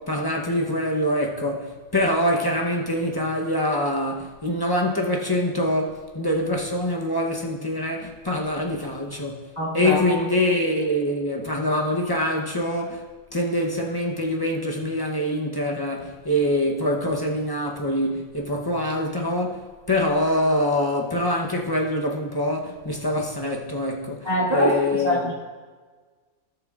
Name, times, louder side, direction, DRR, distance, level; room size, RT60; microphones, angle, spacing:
voice 1, 0.0-13.0 13.3-25.3, left 1 dB, 20° left, 0.7 m, -25 dB
voice 2, 9.6-10.0 24.2-24.8 25.0-25.3, equal, 20° right, 2.3 m, -22 dB
17.0 x 6.7 x 2.4 m
omnidirectional pair, 1.4 m